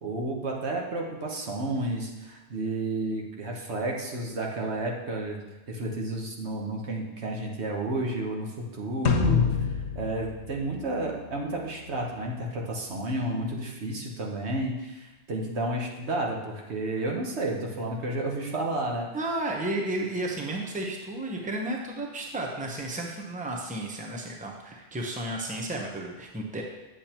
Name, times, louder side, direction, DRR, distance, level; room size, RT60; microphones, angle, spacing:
voice 1, 0.0-5.4 5.7-8.5 8.7-9.4 9.9-19.1, right 2 dB, 75° right, 0 dB, 1.4 m, -31 dB
sound 1, 9.1-11.5, left 5 dB, 80° left, 1.0 m, -26 dB
voice 2, 19.1-26.6, right 1 dB, 10° right, 0 dB, 0.8 m, -33 dB
8.4 x 7.1 x 2.9 m, 1.1 s
omnidirectional pair, 1.2 m